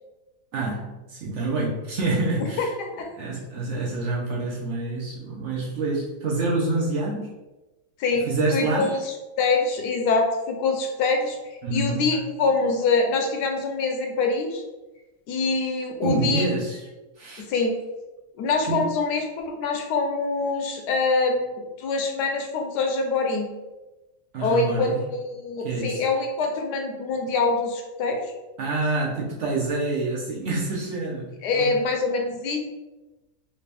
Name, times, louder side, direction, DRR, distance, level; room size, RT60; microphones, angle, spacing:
voice 1, 0.5-2.7 3.2-7.3 8.2-8.9 11.6-12.1 16.0-16.8 17.2-17.5 18.7-18.9 24.3-25.0 25.6-26.0 28.6-31.7, right 2 dB, 60° right, -3 dB, 0.8 m, -27 dB
voice 2, 8.0-14.6 15.3-16.5 17.5-17.7 18.4-21.5 21.8-23.5 24.4-28.3 31.4-32.6, left 3 dB, 85° left, 3 dB, 1.2 m, -25 dB
3.3 x 2.7 x 3.3 m, 1.1 s
omnidirectional pair, 1.7 m